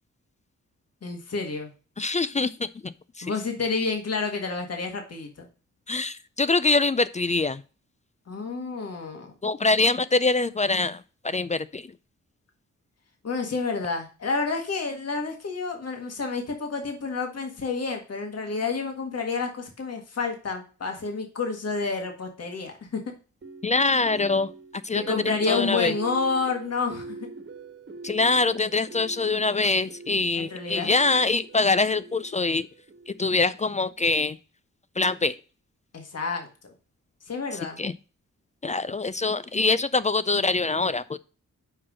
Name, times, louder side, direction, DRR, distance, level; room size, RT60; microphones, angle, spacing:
voice 1, 1.0-1.7 3.2-5.5 8.3-9.3 13.2-23.0 24.9-27.2 30.3-30.9 35.9-36.7 37.3-37.8, left 4 dB, 55° left, 3 dB, 1.7 m, -29 dB
voice 2, 2.0-3.3 5.9-7.6 9.4-11.9 23.6-24.5 24.8-25.9 28.0-32.7 33.1-34.4 35.0-35.4 37.8-37.9 38.6-41.2, left 3 dB, 25° left, 15 dB, 0.4 m, -24 dB
sound 1, 23.4-33.5, right 3 dB, 35° right, 1.4 m, -43 dB
5.8 x 4.6 x 6.2 m, 0.35 s
cardioid pair, 85°, 30 cm